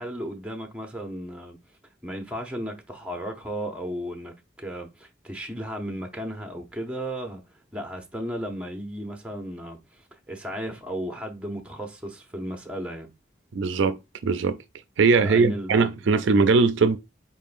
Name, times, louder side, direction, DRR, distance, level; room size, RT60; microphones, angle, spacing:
voice 1, 0.0-1.6 2.0-7.4 7.7-13.1 15.2-16.2, equal, 5° right, 0.7 m, -35 dB
voice 2, 13.5-14.6 15.0-17.0, right 4 dB, 75° right, 0.4 m, -20 dB
4.3 x 3.6 x 2.5 m
head